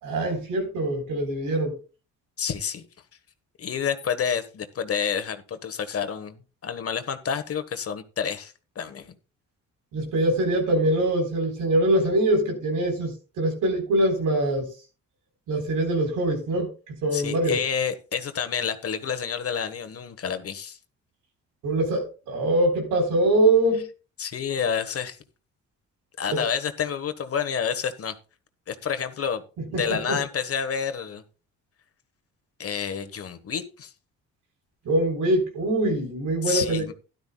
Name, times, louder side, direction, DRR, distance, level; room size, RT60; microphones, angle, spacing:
voice 1, 0.0-1.8 9.9-14.7 15.5-16.7 17.0-17.6 21.6-23.9 26.3-26.4 29.7-29.8 30.1-30.2 34.9-36.9, right 1 dB, 90° right, 4.3 m, -23 dB
voice 2, 2.4-2.8 3.6-9.1 17.1-20.8 24.2-25.2 26.2-28.1 28.7-29.4 29.7-31.2 32.6-33.9 36.4-36.9, left 7 dB, 50° left, 1.4 m, -29 dB
12.5 x 12.0 x 2.3 m
cardioid pair, 90°, 30 cm